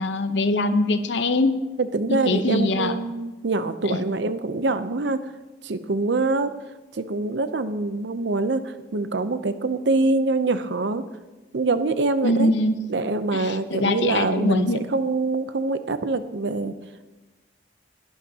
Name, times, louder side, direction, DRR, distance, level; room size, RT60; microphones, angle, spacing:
voice 1, 0.0-1.5 2.1-3.0 3.8-4.0 12.2-12.8 13.3-14.8, left 2 dB, 70° left, 10 dB, 0.8 m, -23 dB
voice 2, 1.8-5.2 5.6-6.5 7.0-11.0 11.5-12.5 12.9-14.7 14.9-16.7, right 3 dB, 70° right, 11 dB, 0.6 m, -24 dB
19.0 x 11.5 x 2.8 m, 1.2 s
head